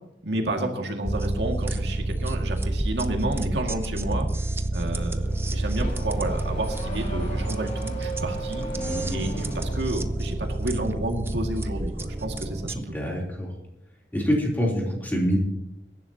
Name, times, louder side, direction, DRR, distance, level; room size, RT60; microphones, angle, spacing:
voice 1, 0.2-4.3 4.7-8.6 9.1-12.9, right 1 dB, 85° right, 2 dB, 2.1 m, -30 dB
sound 1, 1.1-12.8, right 1 dB, 15° right, 0.6 m, -29 dB
Car / Accelerating revving vroom, 5.2-10.1, right 2 dB, 45° left, 3.8 m, -36 dB
voice 2, 8.7-9.3 12.7-13.5 14.1-15.4, equal, 10° left, -3 dB, 3.2 m, -26 dB
22.0 x 11.0 x 2.9 m, 0.86 s
head